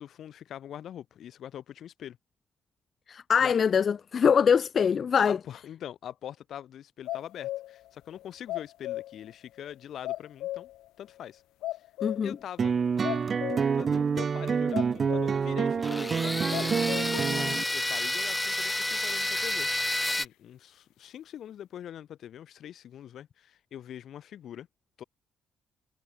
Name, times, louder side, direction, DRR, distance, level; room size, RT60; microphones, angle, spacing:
voice 1, 0.0-2.2 3.4-3.5 5.3-10.7 11.0-11.4 12.2-24.7 25.0-25.1, left 10 dB, 65° left, 7.3 m, -43 dB
voice 2, 3.1-5.4 12.0-12.4, left 7 dB, 45° left, 2.2 m, -23 dB
sound 1, 7.1-7.9 8.1-9.3 9.6-9.7 10.0-10.9 11.2-11.3 11.6-12.5 12.8-13.9 14.2-14.3 14.7-15.5 15.9-16.0 16.5-17.3, left 15 dB, 90° left, 2.4 m, -36 dB
sound 2, 12.6-17.6, right 6 dB, 40° right, 1.0 m, -27 dB
sound 3, 15.8-20.3, left 2 dB, 10° left, 1.8 m, -30 dB
cardioid pair, 105°, 0 cm